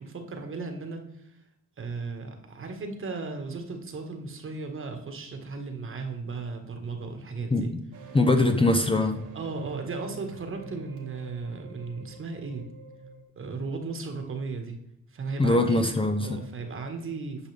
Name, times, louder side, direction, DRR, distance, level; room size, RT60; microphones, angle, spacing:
voice 1, 0.0-1.3 1.8-7.7 9.3-12.7 13.4-14.8 15.1-15.9 16.2-17.5, right 4 dB, 45° right, 5 dB, 1.6 m, -36 dB
sound 1, 7.9-13.2, right 4 dB, 75° right, 1.8 m, -46 dB
voice 2, 8.1-9.2 15.4-16.4, left 2 dB, 20° left, 6 dB, 0.8 m, -22 dB
10.5 x 5.3 x 3.4 m, 0.79 s
cardioid pair, 90°, 30 cm